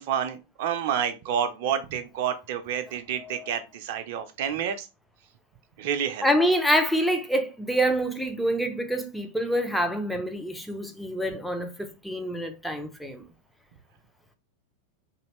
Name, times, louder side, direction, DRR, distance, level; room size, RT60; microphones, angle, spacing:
voice 1, 0.0-4.9 5.8-6.3 11.3-11.4, right 8 dB, 50° right, 0.5 m, -29 dB
voice 2, 6.2-13.2, equal, ahead, 0.6 m, -26 dB
3.1 x 2.8 x 3.0 m
figure-of-eight pair, 90°, 0 cm